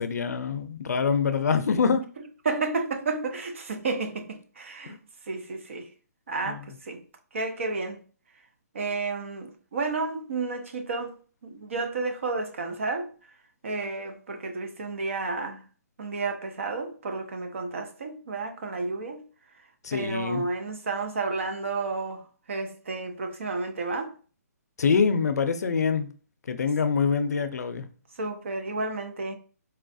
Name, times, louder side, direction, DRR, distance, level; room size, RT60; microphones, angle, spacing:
voice 1, 0.0-2.0 4.9-5.0 6.4-6.7 19.8-20.4 24.8-26.1 26.5-27.9, left 5 dB, 70° left, 0.5 m, -25 dB
voice 2, 2.4-5.0 5.3-5.9 6.3-7.0 7.3-8.0 8.7-11.2 11.4-13.1 13.6-15.6 16.0-19.2 19.9-24.1 28.2-29.3, right 3 dB, 50° right, 0.6 m, -31 dB
4.2 x 2.3 x 2.5 m
hypercardioid pair, 175°, 9 cm